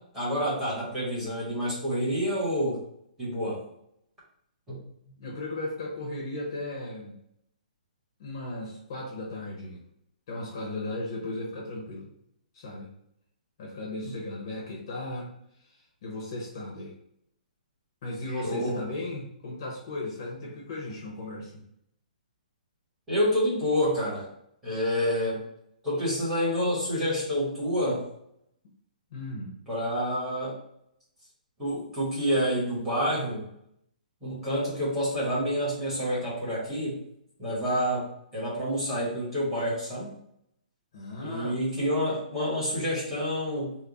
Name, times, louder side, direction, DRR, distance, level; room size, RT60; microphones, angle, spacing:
voice 1, 0.1-2.8 3.2-3.6 4.7-4.8 14.0-14.1 18.3-18.8 23.1-24.3 24.6-25.4 25.8-28.1 29.7-30.6 31.6-33.5 34.2-37.0 37.4-40.1 41.2-43.8, equal, 5° right, -10 dB, 1.1 m, -28 dB
voice 2, 5.2-7.1 8.2-9.8 10.3-12.1 12.5-12.9 13.6-15.3 16.0-16.9 18.0-21.5 29.1-29.5 40.9-41.6, left 2 dB, 30° left, -3 dB, 0.7 m, -36 dB
3.5 x 2.1 x 3.9 m, 0.74 s
hypercardioid pair, 175°, 5 cm